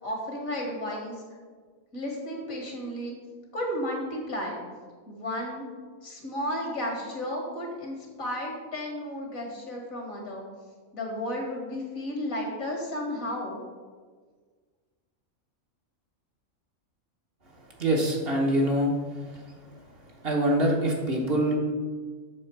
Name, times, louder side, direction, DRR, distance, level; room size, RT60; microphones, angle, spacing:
voice 1, 0.0-1.2 1.9-3.2 3.5-4.6 5.1-5.7 6.0-10.5 10.9-13.6, left 1 dB, 70° left, 0 dB, 2.2 m, -33 dB
voice 2, 17.8-18.9 20.2-21.6, right 1 dB, 45° right, -1 dB, 1.4 m, -24 dB
7.6 x 6.3 x 4.6 m, 1.5 s
omnidirectional pair, 1.5 m